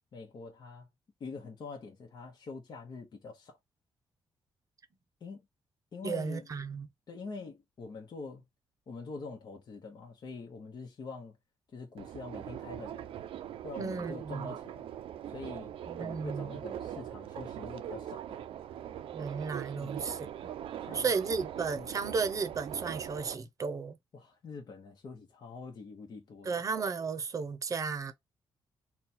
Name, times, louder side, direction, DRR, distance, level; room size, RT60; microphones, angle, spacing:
voice 1, 0.1-0.9 1.2-3.6 5.2-5.4 5.9-6.5 7.1-8.4 8.9-11.4 11.7-13.1 13.6-14.9 15.3-15.7 16.0-18.4 19.8-20.0 20.8-21.1 21.8-21.9 24.1-26.5, left 4 dB, 50° left, 1.0 m, -45 dB
voice 2, 6.0-6.9 13.8-14.5 15.9-16.6 19.1-20.3 20.9-24.0 26.4-28.1, right 5 dB, 40° right, 0.7 m, -34 dB
Subway metro underground, 12.0-23.4, right 10 dB, 85° right, 0.5 m, -41 dB
4.1 x 2.3 x 4.2 m
cardioid pair, 125°, 9 cm